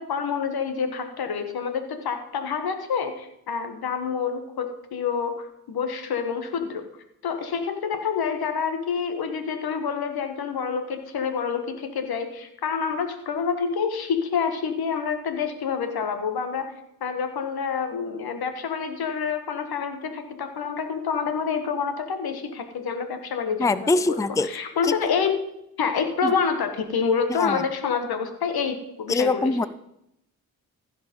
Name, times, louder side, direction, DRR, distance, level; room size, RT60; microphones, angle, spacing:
voice 1, 0.0-6.8 7.2-16.7 17.0-25.4 25.8-29.6, left 6 dB, 80° left, 7 dB, 1.4 m, -27 dB
voice 2, 23.6-24.5 27.4-27.6 29.1-29.7, left 3 dB, 10° left, 15 dB, 0.5 m, -22 dB
15.5 x 5.2 x 5.3 m, 0.80 s
cardioid pair, 50°, 37 cm